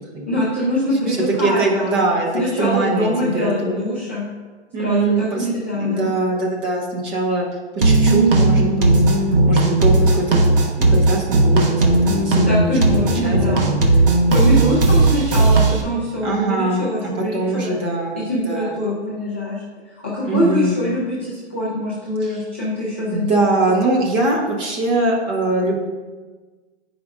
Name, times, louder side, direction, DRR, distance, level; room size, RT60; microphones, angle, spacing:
voice 1, 0.2-2.0 2.3-4.2 4.8-6.1 12.4-13.7 14.3-17.7 18.1-19.6 20.0-23.5, left 1 dB, 10° left, -8 dB, 0.3 m, -23 dB
voice 2, 1.1-3.7 4.7-7.5 7.7-8.9 9.5-10.4 10.8-12.7 13.0-13.7 14.2-15.2 16.2-16.9 17.3-18.8 20.2-20.8 22.2-22.4 23.1-25.8, right 2 dB, 15° right, -1 dB, 0.8 m, -22 dB
sound 1, 7.8-15.8, right 2 dB, 50° right, 1.2 m, -16 dB
9.2 x 5.1 x 2.4 m, 1.3 s
hypercardioid pair, 155°, 34 cm